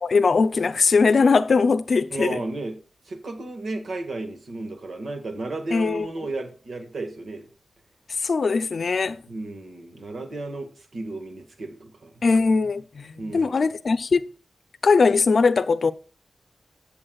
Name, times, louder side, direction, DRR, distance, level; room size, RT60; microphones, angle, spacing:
voice 1, 0.0-2.4 5.7-6.1 8.2-9.2 12.2-14.3 14.8-15.9, left 4 dB, 65° left, 0.5 m, -20 dB
voice 2, 2.1-2.7 3.0-7.5 9.3-12.1 13.2-13.7, right 2 dB, 80° right, 1.7 m, -33 dB
16.5 x 7.1 x 2.4 m
wide cardioid pair, 115°, 0 cm